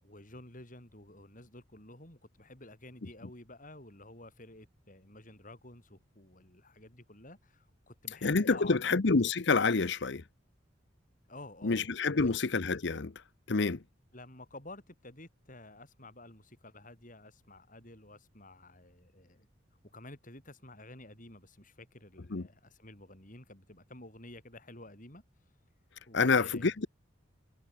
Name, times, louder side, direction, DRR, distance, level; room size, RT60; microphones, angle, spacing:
voice 1, 0.0-9.0 11.3-12.4 14.1-19.5 19.9-25.2 26.1-26.7, left 2 dB, 40° left, 7.8 m, -51 dB
voice 2, 8.2-10.2 11.6-13.1 13.5-13.8 22.3-22.4 26.1-26.9, left 4 dB, 60° left, 0.8 m, -27 dB
head